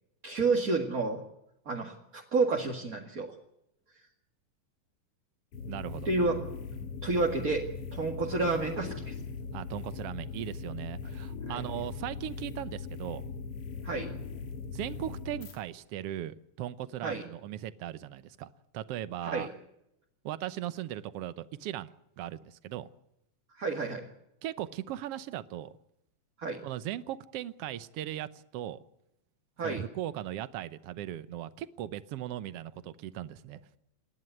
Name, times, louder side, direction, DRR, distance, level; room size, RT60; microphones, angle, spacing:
voice 1, 0.2-1.2 1.7-3.4 6.0-6.4 7.0-7.6 7.9-9.1 11.5-11.6 13.8-14.1 17.0-17.2 19.2-19.5 23.6-24.1 26.4-26.6 29.6-29.8, right 3 dB, 30° right, 1 dB, 2.0 m, -30 dB
sound 1, 5.5-15.6, left 5 dB, 50° left, 2.7 m, -40 dB
voice 2, 5.7-6.1 9.5-13.2 14.7-19.5 20.2-22.9 24.4-25.8 26.6-28.8 29.6-33.6, right 12 dB, 70° right, 14 dB, 1.5 m, -38 dB
29.0 x 11.0 x 9.4 m, 0.82 s
omnidirectional pair, 3.7 m